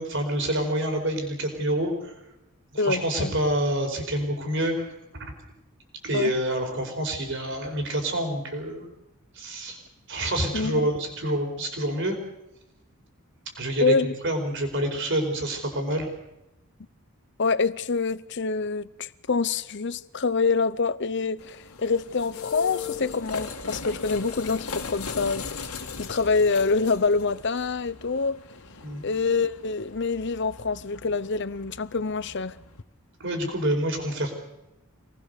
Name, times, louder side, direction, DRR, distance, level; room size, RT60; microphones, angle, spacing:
voice 1, 0.0-2.1 2.7-5.3 6.0-8.9 9.3-9.8 10.1-12.2 13.5-16.1 28.8-29.0 33.2-34.3, right 1 dB, 55° right, 4.7 m, -27 dB
voice 2, 2.8-3.3 6.1-6.3 10.5-10.8 13.8-14.1 17.4-28.4 29.0-32.6, left 4 dB, 55° left, 0.8 m, -26 dB
sound 1, 21.4-32.8, left 5 dB, 90° left, 2.2 m, -39 dB
26.0 x 19.5 x 6.7 m
head